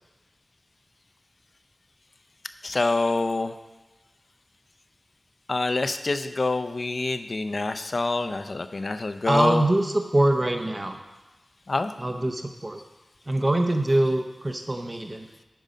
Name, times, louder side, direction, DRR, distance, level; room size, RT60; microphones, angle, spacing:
voice 1, 2.6-3.5 5.5-9.6 11.7-11.9, left 3 dB, 60° left, 10 dB, 0.5 m, -26 dB
voice 2, 9.3-11.0 12.0-12.8 13.3-15.3, right 1 dB, 35° right, 5 dB, 0.8 m, -24 dB
9.2 x 5.4 x 5.1 m, 1.1 s
wide cardioid pair, 55°, 0 cm